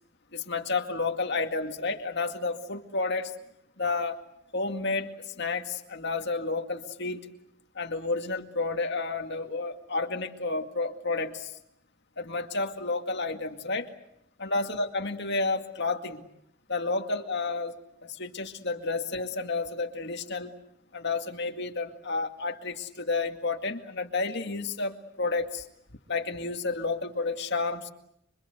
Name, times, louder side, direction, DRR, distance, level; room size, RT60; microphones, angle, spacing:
voice 1, 0.3-3.4 3.8-4.2 4.5-7.3 7.8-11.5 12.2-13.9 14.4-16.3 16.7-17.8 18.0-20.5 20.9-25.7 26.1-27.9, left 3 dB, 55° left, 4 dB, 2.2 m, -31 dB
26.0 x 25.0 x 8.1 m, 0.78 s
head